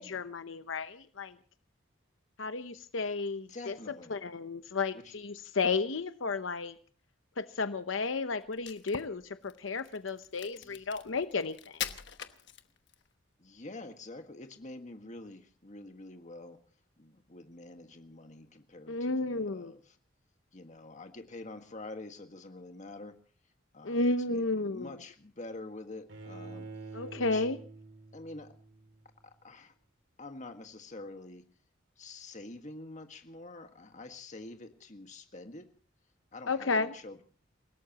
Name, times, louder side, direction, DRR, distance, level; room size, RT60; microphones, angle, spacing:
voice 1, 0.0-1.4 2.4-3.8 4.1-6.8 7.4-11.8 18.9-19.7 23.8-25.0 26.9-27.6 36.5-36.9, left 3 dB, 80° left, 10 dB, 0.8 m, -33 dB
voice 2, 3.5-4.2 4.9-5.1 10.5-10.9 13.4-16.6 17.0-19.8 20.5-23.2 23.7-26.7 27.1-27.5 28.1-28.5 29.4-29.7 30.2-31.5 32.0-35.7 36.3-37.2, left 2 dB, 40° left, 6 dB, 1.7 m, -46 dB
Crack, 8.5-13.1, left 9 dB, 65° left, 1.1 m, -43 dB
Bowed string instrument, 26.1-29.1, right 3 dB, 70° right, 2.4 m, -47 dB
28.5 x 17.5 x 3.0 m, 0.40 s
head